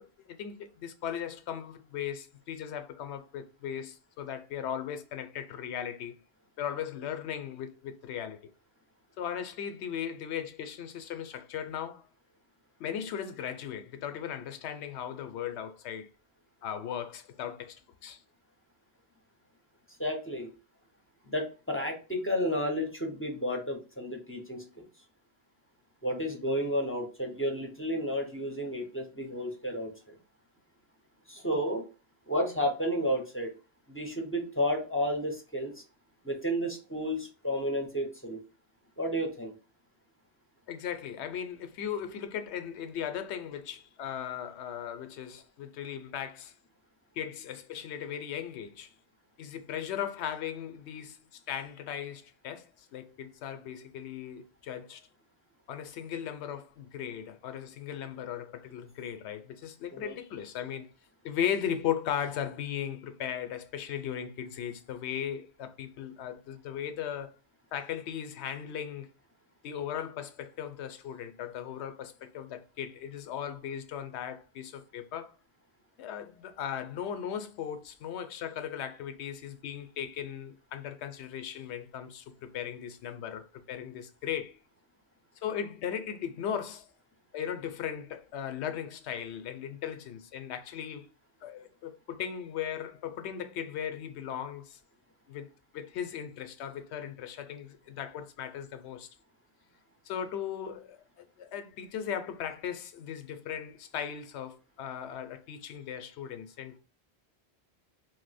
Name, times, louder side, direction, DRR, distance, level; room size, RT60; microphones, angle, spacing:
voice 1, 0.0-6.1 6.6-8.4 9.2-12.1 12.8-16.1 16.6-18.2 40.7-46.5 47.2-48.9 49.4-51.2 51.5-55.1 55.7-60.9 61.2-67.3 67.7-69.1 69.6-75.4 76.0-84.6 85.4-86.9 87.3-91.1 91.4-94.8 95.3-99.1 100.0-106.8, left 9 dB, 90° left, 0.9 m, -37 dB
voice 2, 20.0-20.5 21.3-24.8 26.0-30.1 31.3-31.8 32.3-33.5 33.9-35.8 36.2-38.4 39.0-39.5 59.9-60.1, equal, 15° left, 0.5 m, -32 dB
2.7 x 2.1 x 4.0 m
omnidirectional pair, 1.1 m